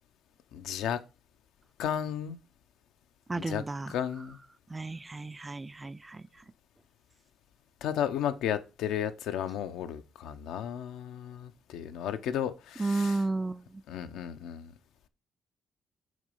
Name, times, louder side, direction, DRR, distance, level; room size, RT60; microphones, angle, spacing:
voice 1, 0.5-1.0 1.8-2.4 3.4-3.6 3.9-4.4 7.8-13.2 13.9-14.7, left 9 dB, 85° left, 0.7 m, -33 dB
voice 2, 3.3-3.9 4.7-6.2 12.8-13.6, right 3 dB, 20° right, 0.3 m, -32 dB
6.2 x 4.1 x 5.4 m
cardioid pair, 90°, 0 cm